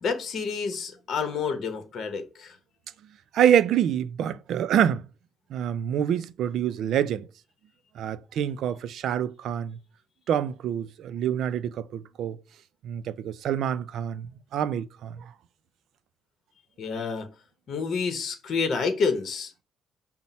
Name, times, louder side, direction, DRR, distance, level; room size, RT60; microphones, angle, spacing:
voice 1, 0.0-2.6 16.8-17.3 17.7-19.6, left 5 dB, 55° left, 0.9 m, -29 dB
voice 2, 3.3-5.0 5.5-7.2 8.0-9.8 10.3-12.4 12.8-14.3 14.5-15.1, right 9 dB, 70° right, 0.4 m, -26 dB
5.5 x 2.1 x 4.2 m
cardioid pair, 120°, 0 cm